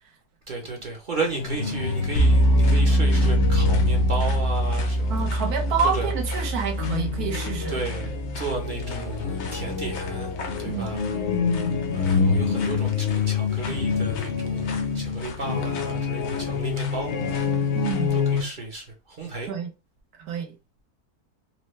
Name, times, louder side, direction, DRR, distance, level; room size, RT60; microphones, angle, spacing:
voice 1, 0.5-5.3 5.9-6.1 7.7-10.3 10.6-11.0 11.9-17.5 18.3-19.5, right 3 dB, 45° right, 0.7 m, -33 dB
sound 1, 1.3-18.4, left 5 dB, 55° left, 0.9 m, -27 dB
sound 2, 2.2-11.0, right 1 dB, 75° left, 1.4 m, -24 dB
voice 2, 5.1-7.7 10.6-10.9 17.7-18.2 19.4-19.7 20.2-20.5, right 6 dB, 80° right, 1.4 m, -28 dB
4.4 x 2.1 x 3.1 m
omnidirectional pair, 1.6 m